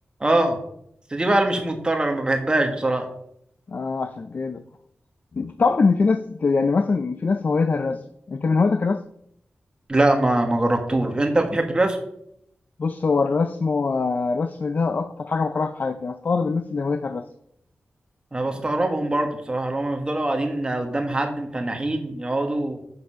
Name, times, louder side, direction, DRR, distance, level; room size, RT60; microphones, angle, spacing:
voice 1, 0.2-0.6 1.1-3.1 9.9-12.0 18.3-22.8, right 2 dB, 20° right, 4 dB, 1.6 m, -23 dB
voice 2, 3.7-4.6 5.3-8.0 8.3-9.0 12.8-17.3, left 4 dB, 45° left, 10 dB, 0.6 m, -23 dB
9.9 x 6.9 x 5.7 m, 0.73 s
wide cardioid pair, 160°, 4 cm